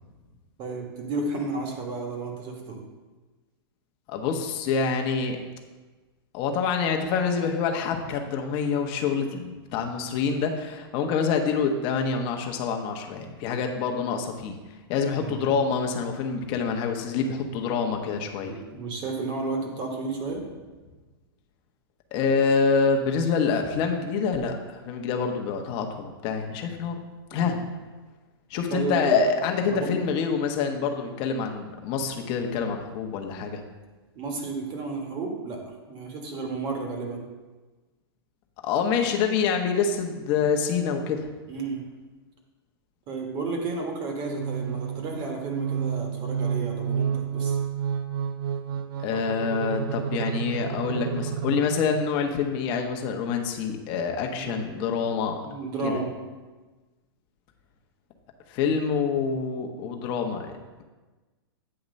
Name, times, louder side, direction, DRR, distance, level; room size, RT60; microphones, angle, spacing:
voice 1, 0.6-2.8 15.2-15.4 18.4-20.4 27.3-27.5 28.7-29.2 29.6-29.9 34.1-35.6 35.9-37.2 41.5-41.8 43.1-47.6 54.4-54.8 55.4-56.1, right 3 dB, 35° right, 2 dB, 1.4 m, -32 dB
voice 2, 4.1-5.4 6.3-14.6 14.9-18.6 22.1-27.0 27.3-27.6 28.5-33.6 38.6-41.3 49.0-55.4 55.8-56.0 58.5-60.5, left 5 dB, 40° left, 3 dB, 0.9 m, -26 dB
sound 1, 44.2-52.2, right 8 dB, 65° right, 0.5 m, -30 dB
8.6 x 2.9 x 5.3 m, 1.3 s
hypercardioid pair, 135°, 13 cm